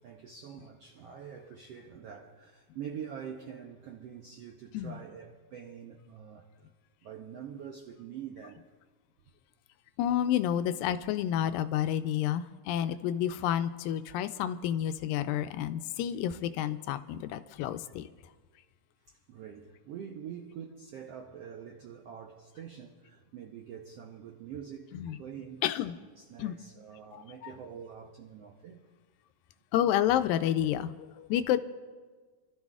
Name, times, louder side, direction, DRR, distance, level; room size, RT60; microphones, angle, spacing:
voice 1, 0.0-6.7 7.0-8.6 19.1-25.6 26.0-28.9, right 8 dB, 80° right, 1.4 m, -45 dB
voice 2, 10.0-18.1 24.9-25.2 25.6-26.0 26.4-26.6 27.1-27.5 29.7-31.6, left 11 dB, 90° left, 2.3 m, -30 dB
30.0 x 13.0 x 2.4 m
omnidirectional pair, 3.9 m